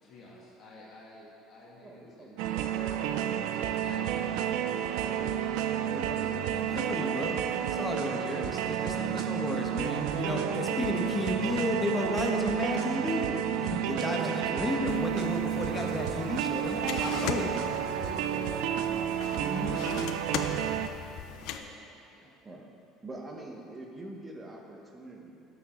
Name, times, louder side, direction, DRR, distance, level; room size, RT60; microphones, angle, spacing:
voice 1, 0.0-3.2 3.8-4.9 5.5-7.2 17.6-18.7 19.4-21.7 22.1-22.3, left 1 dB, 50° left, -6 dB, 2.2 m, -51 dB
voice 2, 1.8-2.5 5.9-8.2 14.1-14.4 18.9-19.1 22.2-22.7 23.0-25.5, right 2 dB, 20° right, 1 dB, 1.3 m, -45 dB
sound 1, 2.4-20.9, right 10 dB, 75° right, 0.5 m, -31 dB
voice 3, 6.7-13.3 13.6-17.6 19.3-19.8, left 2 dB, 15° left, 0 dB, 1.3 m, -33 dB
sound 2, 14.9-21.6, left 8 dB, 65° left, 0.6 m, -40 dB
12.0 x 7.1 x 3.9 m, 2.6 s
cardioid pair, 120°, 0 cm